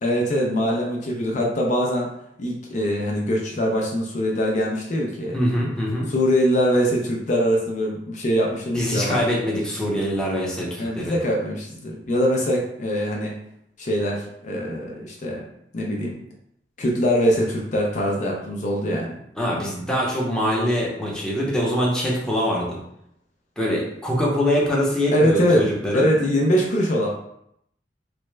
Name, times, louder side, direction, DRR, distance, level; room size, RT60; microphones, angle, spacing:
voice 1, 0.0-2.1 2.4-5.4 6.1-9.2 10.8-13.3 13.8-15.4 15.7-16.2 16.8-19.1 25.1-25.6 25.9-27.1, equal, 45° left, -2 dB, 0.5 m, -22 dB
voice 2, 5.3-6.1 8.7-11.1 19.4-22.8 23.6-26.1, equal, 5° left, -4 dB, 0.7 m, -23 dB
3.3 x 2.1 x 3.2 m, 0.75 s
head